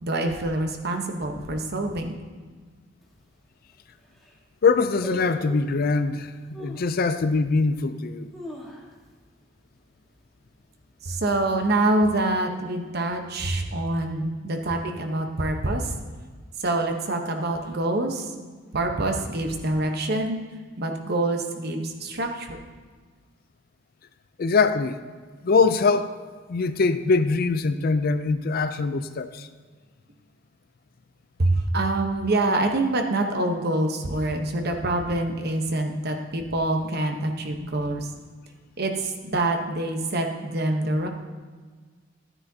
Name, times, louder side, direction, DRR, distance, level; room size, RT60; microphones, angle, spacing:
voice 1, 0.0-2.2 11.0-15.9 16.6-18.5 18.7-20.4 20.8-22.6 31.4-38.1 38.8-41.1, right 2 dB, 55° right, 4 dB, 1.0 m, -26 dB
sound 1, 3.0-3.1 3.7-3.8 4.0-4.4 5.0-5.8 6.5-6.9 7.5-7.6 8.1-9.2 9.5-9.6 9.9-10.3 10.7-11.1 11.7-12.5 12.7-12.8, equal, ahead, 1.4 m, -40 dB
voice 2, 4.6-6.3 6.6-8.3 24.4-25.0 25.4-26.2 26.5-29.5, left 4 dB, 50° left, 11 dB, 0.4 m, -22 dB
12.0 x 9.8 x 2.8 m, 1.5 s
head